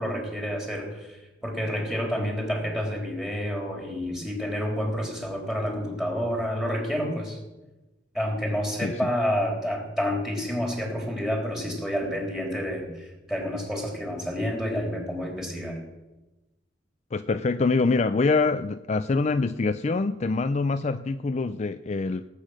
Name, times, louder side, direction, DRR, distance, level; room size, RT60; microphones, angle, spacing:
voice 1, 0.0-7.4 8.1-15.8, equal, 5° right, 0 dB, 3.7 m, -29 dB
voice 2, 17.1-22.3, left 3 dB, 40° left, 11 dB, 0.4 m, -25 dB
18.5 x 8.6 x 6.4 m, 1.1 s
head